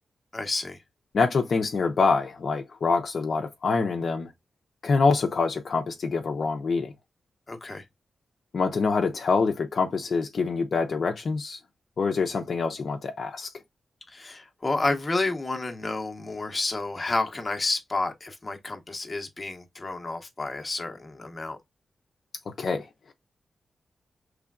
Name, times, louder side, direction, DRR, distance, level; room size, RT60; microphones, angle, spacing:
voice 1, 0.3-0.8 7.5-7.8 14.1-21.6, left 2 dB, 25° left, 0.9 m, -30 dB
voice 2, 1.1-4.3 4.8-6.9 8.5-11.6 12.0-13.5 22.6-23.1, left 4 dB, 55° left, 0.6 m, -25 dB
4.9 x 3.3 x 2.3 m
wide cardioid pair, 135°, 0 cm